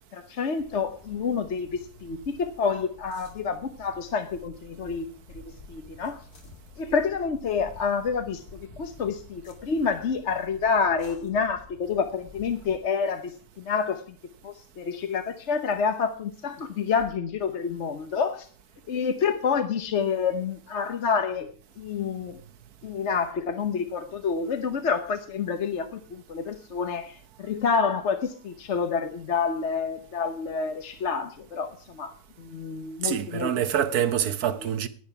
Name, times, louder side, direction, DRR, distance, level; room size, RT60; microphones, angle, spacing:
voice 1, 0.1-5.4 5.7-6.2 6.8-14.0 14.4-18.5 18.9-21.5 21.8-22.4 22.8-32.1 32.4-33.5, left 5 dB, 55° left, 1.2 m, -28 dB
sound 1, 0.6-12.8, left 2 dB, 85° left, 2.7 m, -50 dB
voice 2, 33.0-34.9, right 9 dB, 80° right, 1.5 m, -26 dB
10.5 x 10.0 x 5.7 m
omnidirectional pair, 1.6 m